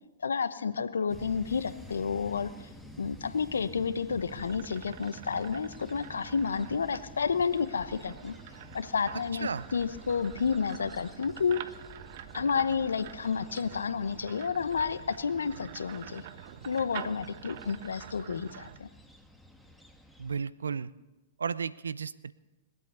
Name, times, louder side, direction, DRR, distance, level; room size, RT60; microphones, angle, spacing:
voice 1, 0.2-2.5 3.0-8.3 8.7-11.6 12.3-16.2 16.6-18.9, left 6 dB, 80° left, 13 dB, 0.8 m, -30 dB
sound 1, 1.1-20.4, left 1 dB, ahead, 1.4 m, -50 dB
sound 2, 3.8-18.8, right 11 dB, 55° right, 0.8 m, -47 dB
voice 2, 20.2-20.9 21.4-22.3, right 6 dB, 80° right, 18 dB, 0.5 m, -33 dB
21.5 x 8.3 x 6.8 m, 1.1 s
hypercardioid pair, 110°, 0 cm